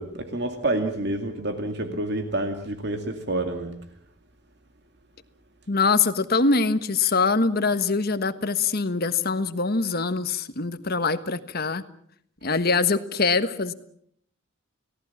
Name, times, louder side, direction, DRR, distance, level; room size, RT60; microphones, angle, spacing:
voice 1, 0.0-3.7, right 2 dB, 55° right, 6 dB, 2.4 m, -28 dB
voice 2, 5.7-11.8 12.4-13.7, left 4 dB, 50° left, 11 dB, 1.4 m, -23 dB
30.0 x 18.0 x 7.3 m, 0.66 s
head